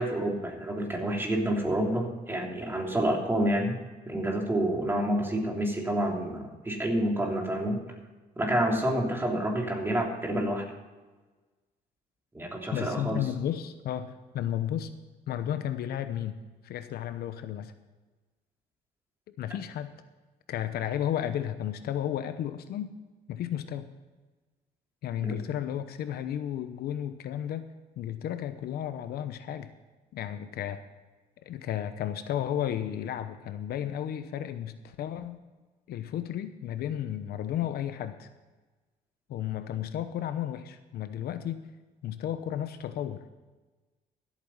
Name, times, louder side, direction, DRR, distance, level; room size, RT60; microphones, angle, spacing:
voice 1, 0.0-3.8 4.1-7.8 8.4-10.7 12.3-13.2 25.2-25.4, right 1 dB, 15° right, 0 dB, 3.2 m, -28 dB
voice 2, 12.7-14.9 15.3-16.4 16.6-17.7 19.4-19.9 20.5-22.9 23.3-23.9 25.0-27.7 28.0-29.7 30.1-30.8 31.4-35.4 35.9-38.3 39.3-41.6 42.0-43.3, left 10 dB, 65° left, 10 dB, 0.9 m, -33 dB
14.5 x 8.6 x 5.5 m, 1.3 s
cardioid pair, 110°, 17 cm